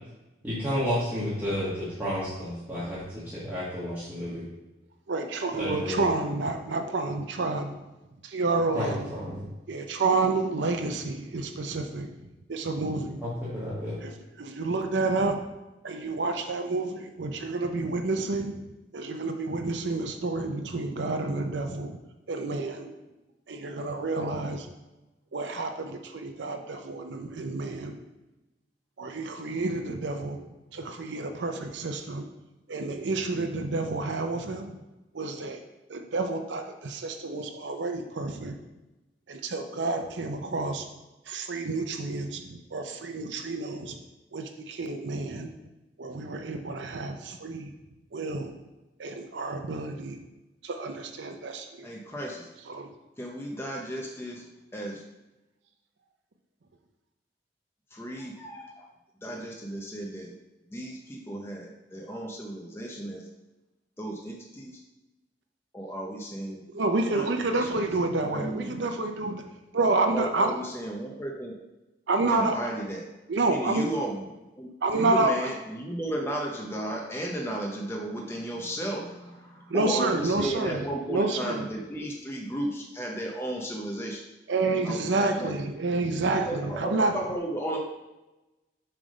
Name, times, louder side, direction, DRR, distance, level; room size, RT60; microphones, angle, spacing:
voice 1, 0.4-4.4 5.6-6.1 8.7-9.4 13.2-14.0, equal, 10° right, -11 dB, 1.6 m, -31 dB
voice 2, 5.1-7.8 8.2-9.1 9.7-12.1 12.5-13.2 14.0-15.4 15.8-18.6 18.9-22.0 22.3-22.9 23.5-24.7 25.3-28.0 29.0-30.4 30.7-32.3 32.7-34.7 35.1-35.6 35.9-38.6 39.3-40.8 41.3-44.0 44.3-45.5 46.0-47.7 48.1-48.5 49.0-50.2 50.6-51.9 52.7-52.9 66.7-69.4 69.7-70.6 72.1-72.6 73.3-73.9 74.8-75.3 79.7-81.6 84.5-87.1, right 3 dB, 80° right, 5 dB, 0.6 m, -29 dB
voice 3, 51.8-52.5 53.2-54.4 54.7-55.0 57.9-58.9 59.2-60.4 60.7-63.3 64.0-64.8 65.7-66.6 67.1-68.7 69.8-71.6 72.3-73.0 73.5-74.2 74.6-84.2 84.8-85.5 86.4-87.8, right 1 dB, 15° left, -1 dB, 0.6 m, -34 dB
7.3 x 3.4 x 5.2 m, 1.0 s
head